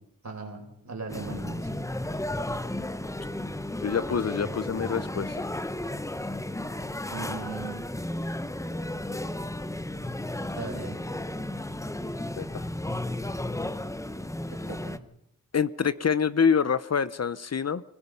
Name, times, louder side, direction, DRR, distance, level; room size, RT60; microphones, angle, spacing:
voice 1, 0.2-1.8 7.1-7.9 10.5-11.0 14.6-15.0, right 3 dB, 55° right, 2 dB, 5.1 m, -38 dB
sound 1, 1.1-15.0, left 1 dB, 10° left, 0.8 m, -33 dB
voice 2, 3.8-5.5 12.4-12.7 15.5-17.8, left 6 dB, 50° left, 16 dB, 0.7 m, -26 dB
24.5 x 20.0 x 5.5 m, 0.76 s
cardioid pair, 65°, 34 cm